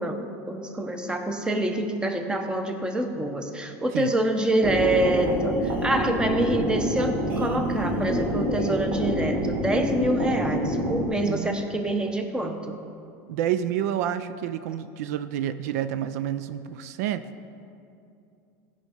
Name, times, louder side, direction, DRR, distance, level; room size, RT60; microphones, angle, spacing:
voice 1, 0.0-12.8, right 1 dB, 10° right, 5 dB, 0.9 m, -26 dB
sound 1, 4.6-11.0, equal, 25° right, 2.2 m, -27 dB
voice 2, 11.2-11.6 13.3-17.2, right 10 dB, 80° right, 12 dB, 0.4 m, -29 dB
15.5 x 5.5 x 5.0 m, 2.6 s
supercardioid pair, 130°, 8 cm